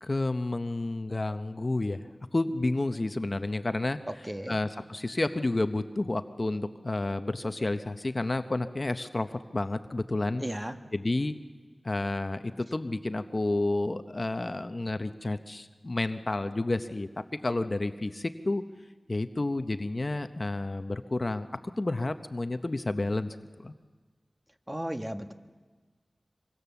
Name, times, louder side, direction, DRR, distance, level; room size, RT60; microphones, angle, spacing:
voice 1, 0.0-2.1 2.3-10.6 10.9-11.3 11.8-18.6 19.1-21.5 21.8-23.7, left 2 dB, 40° left, 9 dB, 0.8 m, -30 dB
voice 2, 4.2-4.6 10.4-10.8 24.7-25.3, equal, 15° right, 7 dB, 1.2 m, -34 dB
25.5 x 24.0 x 7.0 m, 1.4 s
wide cardioid pair, 70°, 0 cm